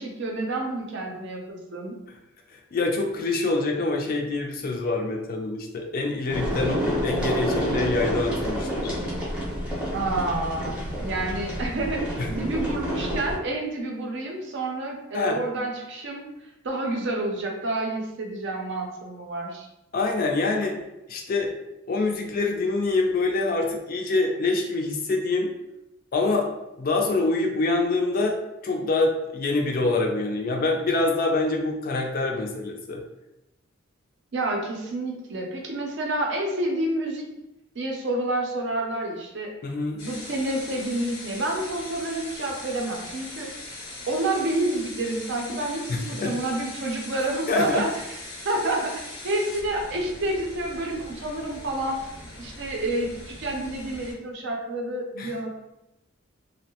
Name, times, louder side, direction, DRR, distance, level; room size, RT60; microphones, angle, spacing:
voice 1, 0.0-2.0 9.9-16.2 16.6-19.7 34.3-37.2 37.7-39.5 40.0-43.5 44.1-48.2 48.4-52.1 52.4-55.5, right 2 dB, 60° right, 0 dB, 0.5 m, -29 dB
voice 2, 2.5-8.9 12.2-12.3 15.1-15.4 19.9-20.8 21.1-21.5 21.9-25.5 26.1-26.5 26.8-28.4 28.6-33.0 39.6-40.0 45.9-46.3 47.5-47.9 55.2-55.3, left 3 dB, 45° left, 1 dB, 0.4 m, -25 dB
sound 1, 6.3-13.4, equal, 5° right, 0.6 m, -28 dB
sound 2, 40.0-54.1, left 2 dB, 90° left, 0.9 m, -41 dB
2.7 x 2.1 x 2.8 m, 0.90 s
head